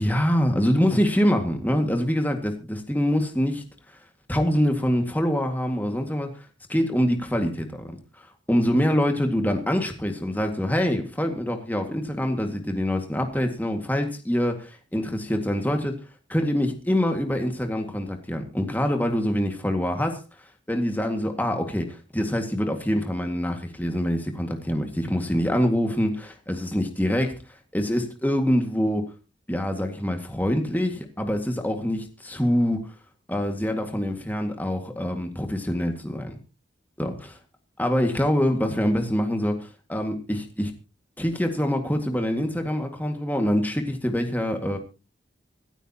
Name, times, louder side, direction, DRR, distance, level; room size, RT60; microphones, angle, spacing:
voice 1, 0.0-3.6 4.3-6.3 6.7-7.9 8.2-15.9 16.3-20.2 20.7-27.3 27.7-29.1 29.5-32.8 33.3-36.3 37.0-37.1 37.8-40.7 41.2-44.8, equal, 10° left, 4 dB, 2.0 m, -25 dB
26.0 x 9.0 x 2.9 m, 0.31 s
head